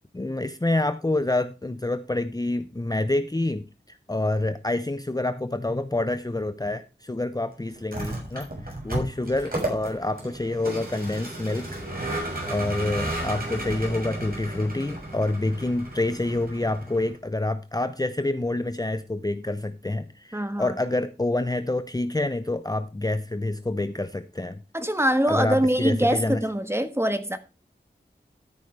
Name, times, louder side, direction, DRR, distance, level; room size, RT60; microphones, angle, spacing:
voice 1, 0.1-11.7 12.5-24.6 25.3-26.4, left 2 dB, 20° left, 0.7 m, -27 dB
Vehicle, 7.8-17.1, right 1 dB, 50° right, 6.9 m, -33 dB
voice 2, 20.3-20.8 24.7-27.4, right 1 dB, 15° right, 1.5 m, -24 dB
13.5 x 9.3 x 3.3 m
wide cardioid pair, 60°, 19 cm